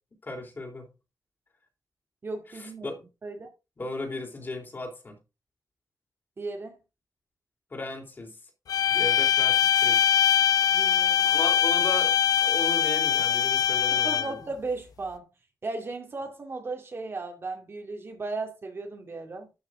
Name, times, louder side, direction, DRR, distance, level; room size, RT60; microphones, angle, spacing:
voice 1, 0.2-0.9 2.5-3.1 3.8-5.2 7.7-8.3 8.9-10.1 11.2-12.1 12.4-14.3, left 2 dB, 35° left, 3.8 m, -36 dB
voice 2, 2.2-2.9 3.2-3.5 6.4-6.8 10.7-11.4 13.9-15.3 15.6-19.5, right 3 dB, 40° right, 2.3 m, -36 dB
sound 1, 8.7-14.4, left 9 dB, 90° left, 1.0 m, -22 dB
12.0 x 6.6 x 3.8 m
wide cardioid pair, 145°, 6 cm